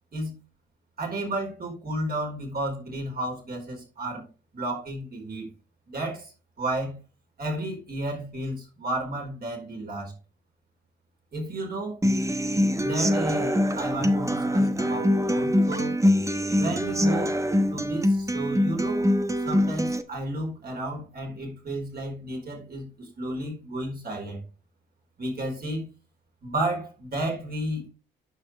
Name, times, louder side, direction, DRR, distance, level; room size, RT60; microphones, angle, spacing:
voice 1, 1.0-4.3 4.5-5.5 5.9-7.0 7.4-10.1 11.3-12.0 12.8-15.9 16.6-17.4 17.7-19.1 19.4-24.4 25.2-25.9 26.4-27.9, right 1 dB, 45° right, 4.7 m, -32 dB
Human voice / Acoustic guitar, 12.0-20.0, equal, 15° right, 1.0 m, -24 dB
9.4 x 6.0 x 3.4 m
supercardioid pair, 55°, 21 cm